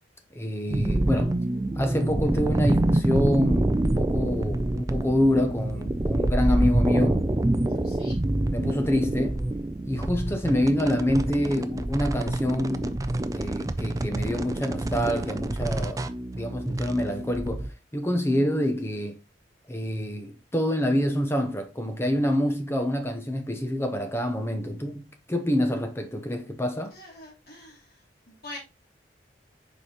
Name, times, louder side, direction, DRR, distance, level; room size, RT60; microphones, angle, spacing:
voice 1, 0.3-1.5 1.8-7.2 8.5-9.5 9.8-13.0 13.3-16.0 16.3-19.2 19.7-26.9, left 1 dB, 15° left, 0.8 m, -27 dB
sound 1, 0.7-17.7, right 1 dB, 20° right, 0.4 m, -26 dB
voice 2, 7.7-8.2 26.9-28.0 28.3-28.6, left 1 dB, 55° left, 2.7 m, -44 dB
6.7 x 5.0 x 3.0 m
head